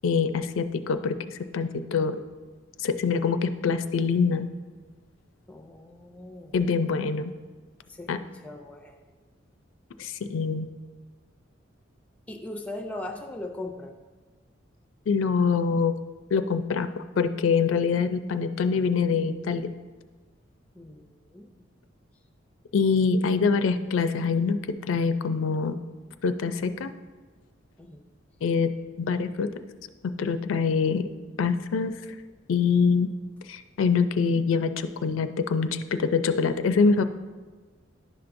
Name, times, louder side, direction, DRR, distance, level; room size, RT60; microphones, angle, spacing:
voice 1, 0.0-2.1 2.8-4.5 6.5-7.3 8.1-8.2 10.0-10.7 15.1-15.9 16.3-19.7 22.7-25.7 26.2-26.9 28.4-28.7 29.0-29.5 30.2-31.1 31.4-31.9 32.5-33.1 33.5-37.0, left 5 dB, 85° left, 10 dB, 0.4 m, -24 dB
voice 2, 5.5-6.7 7.9-9.0 12.3-13.9 20.7-21.5 27.8-28.0, left 2 dB, 5° left, 4 dB, 0.5 m, -39 dB
10.5 x 5.9 x 2.6 m, 1.3 s
head